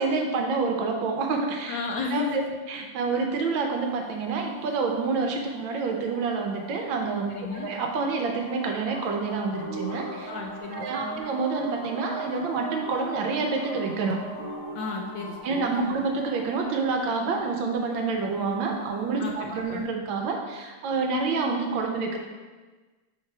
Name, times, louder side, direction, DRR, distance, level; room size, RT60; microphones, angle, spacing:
voice 1, 0.0-1.8 2.1-2.4 2.7-10.3 10.7-14.2 15.4-22.2, right 4 dB, 75° right, 3 dB, 1.3 m, -28 dB
voice 2, 1.7-2.5 7.3-7.7 10.3-11.2 14.7-15.9 19.2-19.3 19.7-19.8, left 4 dB, 75° left, 2 dB, 1.2 m, -33 dB
sound 1, 3.7-19.8, right 1 dB, 50° left, 0.9 m, -42 dB
6.5 x 4.6 x 3.2 m, 1.3 s
omnidirectional pair, 2.3 m